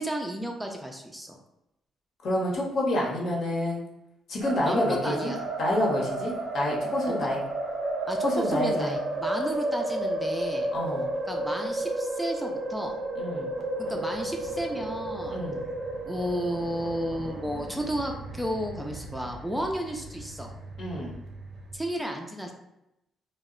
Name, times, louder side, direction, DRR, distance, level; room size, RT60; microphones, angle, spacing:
voice 1, 0.0-1.4 4.7-5.4 7.1-7.3 8.1-10.7 11.3-13.0 13.8-15.4 16.1-20.5 21.7-22.5, equal, 5° right, 2 dB, 0.3 m, -32 dB
voice 2, 2.2-3.8 4.3-5.3 5.6-7.4 8.2-9.0 10.7-11.1 13.1-13.5 15.3-15.6 20.8-21.2, left 1 dB, 65° left, -3 dB, 0.8 m, -28 dB
sound 1, 4.4-21.8, right 1 dB, 65° right, 0.5 m, -33 dB
2.0 x 2.0 x 3.6 m, 0.85 s
cardioid pair, 90°, 0 cm